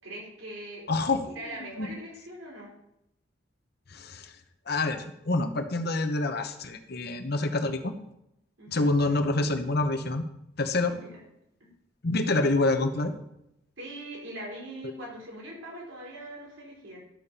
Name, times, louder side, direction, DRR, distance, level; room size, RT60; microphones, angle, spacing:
voice 1, 0.0-0.8 1.4-2.7 8.6-8.9 11.0-11.1 11.6-11.7 13.8-17.0, right 1 dB, 80° right, -3 dB, 3.9 m, -41 dB
voice 2, 0.9-1.9 3.9-7.9 8.7-10.3 10.6-11.0 12.0-13.1, left 2 dB, 55° left, 7 dB, 0.9 m, -27 dB
11.5 x 4.3 x 6.8 m, 0.83 s
head